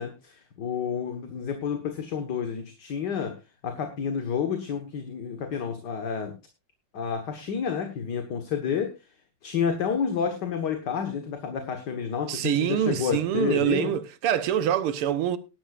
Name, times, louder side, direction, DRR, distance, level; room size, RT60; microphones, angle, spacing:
voice 1, 0.0-3.4 3.6-6.3 6.9-8.9 9.4-13.9, left 7 dB, 55° left, 1.9 m, -30 dB
voice 2, 12.3-15.4, right 10 dB, 80° right, 1.9 m, -25 dB
18.5 x 11.5 x 2.5 m
omnidirectional pair, 2.4 m